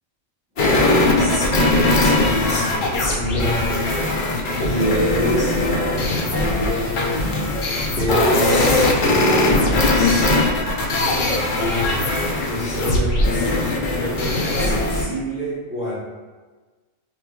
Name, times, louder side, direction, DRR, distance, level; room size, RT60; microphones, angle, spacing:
sound 1, 0.6-15.0, left 2 dB, 65° left, 0.5 m, -20 dB
voice 1, 0.9-4.1 4.6-6.5 7.9-10.3 12.5-13.6 13.9-16.0, equal, 5° right, -10 dB, 0.7 m, -27 dB
4.5 x 2.5 x 2.2 m, 1.3 s
omnidirectional pair, 1.4 m